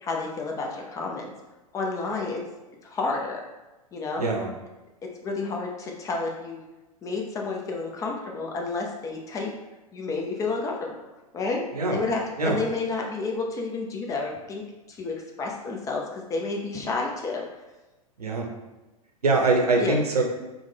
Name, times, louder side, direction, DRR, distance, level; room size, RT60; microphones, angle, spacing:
voice 1, 0.0-1.3 1.7-2.4 2.8-3.4 3.9-4.3 5.0-6.6 7.0-9.5 9.9-10.9 11.3-11.6 11.9-14.6 14.9-17.4 19.8-20.0, left 3 dB, 15° left, 0 dB, 0.4 m, -30 dB
voice 2, 4.2-4.5 11.7-12.0 12.4-12.6 18.2-18.5 19.2-20.2, right 3 dB, 80° right, 1 dB, 0.6 m, -23 dB
3.1 x 2.1 x 3.4 m, 1.1 s
figure-of-eight pair, 100°, 19 cm